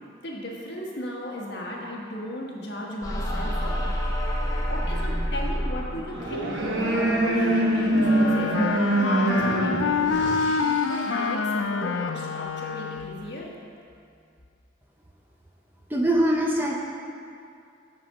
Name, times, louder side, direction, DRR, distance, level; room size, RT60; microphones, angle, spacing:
voice 1, 0.2-3.9 4.7-10.4 10.8-13.5, equal, 60° left, -2 dB, 1.4 m, -35 dB
sound 1, 3.0-8.5, equal, 20° left, 0.8 m, -30 dB
sound 2, 6.1-11.4, right 1 dB, 80° right, 1.0 m, -24 dB
Wind instrument woodwind instrument, 8.0-13.3, left 5 dB, 90° left, 0.4 m, -27 dB
voice 2, 15.9-16.8, right 1 dB, 10° right, -1 dB, 0.6 m, -22 dB
9.3 x 4.2 x 6.4 m, 2.4 s
head